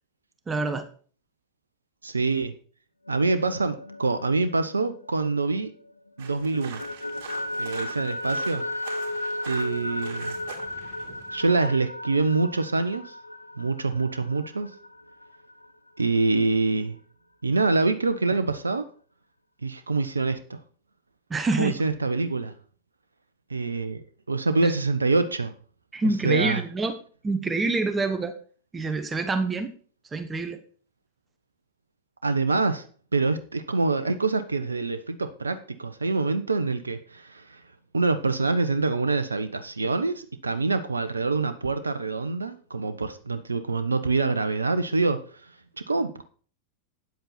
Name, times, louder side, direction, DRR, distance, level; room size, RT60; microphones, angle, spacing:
voice 1, 0.5-0.9 21.3-21.8 24.6-24.7 25.9-27.0 27.2-28.3 28.7-29.7 30.1-30.6, right 3 dB, 15° right, 8 dB, 1.1 m, -26 dB
voice 2, 2.0-2.5 3.1-5.7 6.2-6.8 7.6-8.7 9.5-10.4 11.3-13.1 13.6-14.7 16.0-17.0 17.4-18.8 19.6-20.6 21.6-22.5 23.5-25.5 26.2-26.6 32.2-32.8 33.1-37.6 37.9-45.2 45.9-46.2, right 3 dB, 75° right, 10 dB, 0.7 m, -25 dB
sound 1, 3.1-5.9 6.2-15.7, left 1 dB, 80° left, 0.5 m, -35 dB
sound 2, 6.2-11.7, right 6 dB, 50° right, 2.6 m, -44 dB
9.2 x 7.8 x 4.2 m, 0.42 s
figure-of-eight pair, 90°, 0 cm